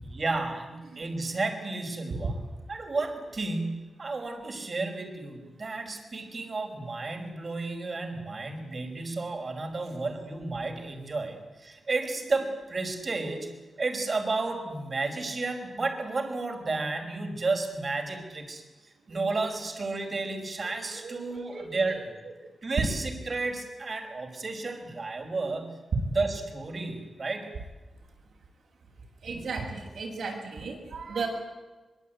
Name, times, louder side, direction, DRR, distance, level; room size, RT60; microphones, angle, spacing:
voice 1, 0.0-2.4 2.7-22.2 22.6-25.8 26.1-27.6, right 3 dB, 40° right, 5 dB, 5.2 m, -32 dB
voice 2, 21.0-22.3 22.8-22.9 29.2-31.3, right 4 dB, 75° right, 2 dB, 7.5 m, -35 dB
24.0 x 23.0 x 9.4 m, 1.2 s
wide cardioid pair, 105°, 0 cm